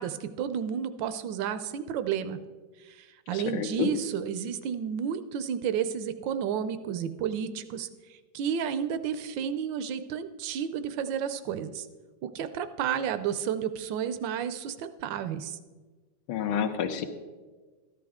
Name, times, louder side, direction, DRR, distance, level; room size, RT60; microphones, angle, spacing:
voice 1, 0.0-2.4 2.8-7.9 8.3-11.9 12.2-15.6, right 8 dB, 75° right, 11 dB, 1.2 m, -31 dB
voice 2, 3.5-3.9 16.3-17.1, left 8 dB, 80° left, 9 dB, 1.6 m, -29 dB
13.5 x 11.0 x 3.6 m, 1.4 s
omnidirectional pair, 2.2 m